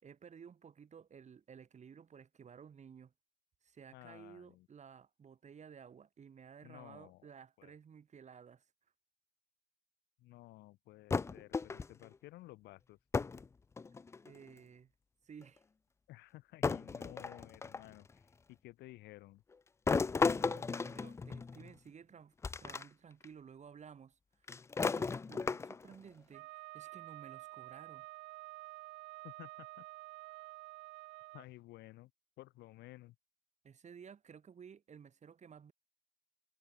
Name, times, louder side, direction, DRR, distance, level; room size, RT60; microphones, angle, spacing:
voice 1, 0.0-3.1 3.6-8.7 14.2-14.9 15.2-15.6 20.1-22.3 22.6-24.2 24.4-28.1 33.6-35.7, right 7 dB, 40° right, 5.5 m, -55 dB
voice 2, 3.9-4.7 6.6-7.2 7.6-7.7 10.2-13.0 16.1-18.2 18.5-19.4 29.2-29.8 31.3-32.1 32.4-33.2, left 18 dB, 75° left, 4.4 m, -54 dB
sound 1, 11.1-12.1 13.1-13.5 13.8-14.4 15.4-15.5 16.6-17.9 19.9-21.7 22.4-22.8 23.2-23.3 24.5-25.9, left 4 dB, 15° left, 0.3 m, -35 dB
Wind instrument woodwind instrument, 26.3-31.5, right 22 dB, 80° right, 1.0 m, -50 dB
supercardioid pair, 80°, 17 cm